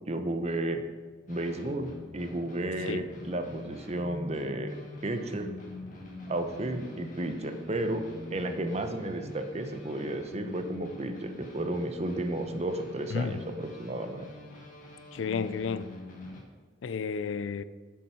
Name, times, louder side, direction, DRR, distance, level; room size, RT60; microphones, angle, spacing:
voice 1, 0.1-0.8 1.3-4.7 5.0-5.5 6.3-8.0 8.3-14.3, right 1 dB, 35° right, 0.8 m, -33 dB
sound 1, 1.3-16.4, left 2 dB, 45° left, 1.7 m, -44 dB
voice 2, 15.1-15.9 16.8-17.6, left 5 dB, 75° left, 0.4 m, -32 dB
7.3 x 7.2 x 5.6 m
head